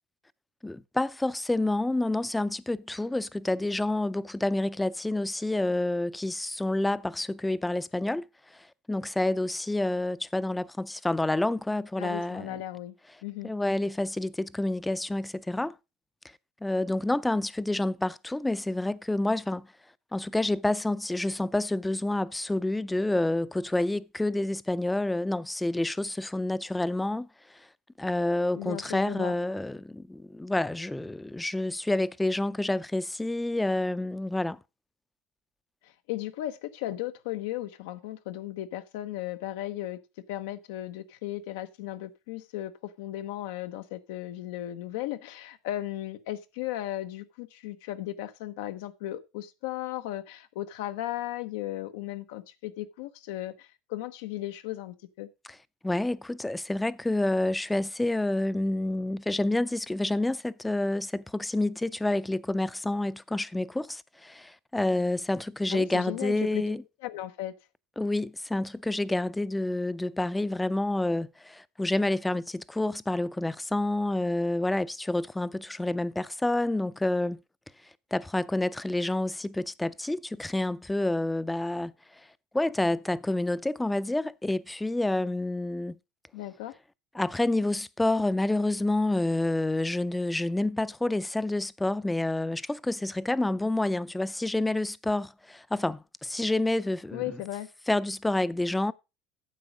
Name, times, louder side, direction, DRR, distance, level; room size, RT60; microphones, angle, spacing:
voice 1, 0.6-8.2 8.5-12.6 13.4-15.8 16.6-19.7 20.1-27.3 28.0-34.6 55.8-66.8 68.0-77.4 78.1-81.9 82.5-86.0 87.1-97.2 97.9-98.9, left 2 dB, 10° left, 0.5 m, -28 dB
voice 2, 12.0-13.0 13.2-13.5 28.5-29.3 35.8-40.0 40.3-55.3 65.7-66.6 67.0-67.5 86.3-86.7 97.1-97.7, left 14 dB, 85° left, 0.9 m, -36 dB
9.4 x 7.0 x 5.1 m
supercardioid pair, 110°, 0 cm